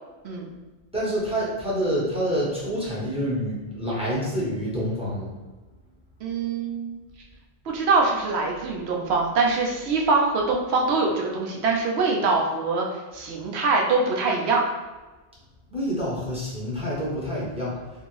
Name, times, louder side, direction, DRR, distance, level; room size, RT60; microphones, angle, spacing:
voice 1, 0.9-5.3 15.7-17.7, equal, 5° right, -8 dB, 0.8 m, -27 dB
voice 2, 6.2-7.0 7.7-12.9 13.1-14.6, right 3 dB, 65° right, 0 dB, 0.8 m, -23 dB
2.8 x 2.6 x 3.0 m, 1.2 s
omnidirectional pair, 1.2 m